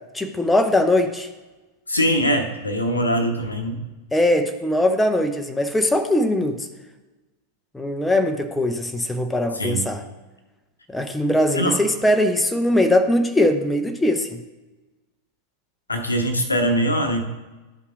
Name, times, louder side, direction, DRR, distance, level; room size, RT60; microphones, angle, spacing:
voice 1, 0.1-1.3 4.1-6.6 7.7-10.0 10.9-14.4, left 1 dB, 5° left, 6 dB, 0.6 m, -20 dB
voice 2, 1.9-3.9 9.5-9.9 11.5-11.8 15.9-17.2, equal, 80° left, 5 dB, 0.9 m, -22 dB
12.5 x 5.5 x 2.4 m, 1.1 s
figure-of-eight pair, 90°, 0 cm